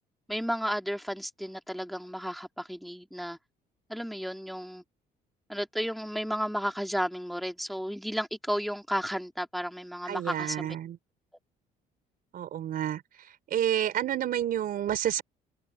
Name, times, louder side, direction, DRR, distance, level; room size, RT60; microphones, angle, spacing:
voice 1, 0.3-3.4 3.9-4.8 5.5-10.8, equal, ahead, 2.4 m, -33 dB
voice 2, 10.1-11.0 12.3-15.2, right 11 dB, 60° right, 4.3 m, -30 dB
open air
cardioid pair, 110°, 17 cm